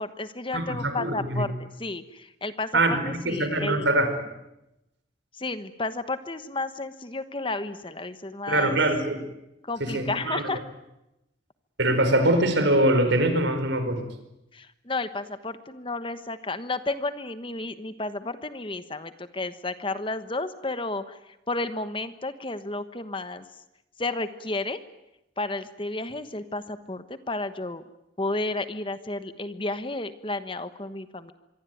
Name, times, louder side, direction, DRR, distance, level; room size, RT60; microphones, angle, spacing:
voice 1, 0.0-2.7 3.1-3.9 5.4-8.8 9.7-10.6 14.5-21.2 21.5-23.4 24.0-24.8 25.4-27.8 28.2-31.3, left 2 dB, 25° left, 11 dB, 1.2 m, -32 dB
voice 2, 0.5-1.4 2.7-4.1 8.5-9.2 9.8-10.5 11.8-14.1, right 1 dB, 65° right, 8 dB, 5.0 m, -23 dB
25.0 x 23.5 x 9.3 m, 0.90 s
head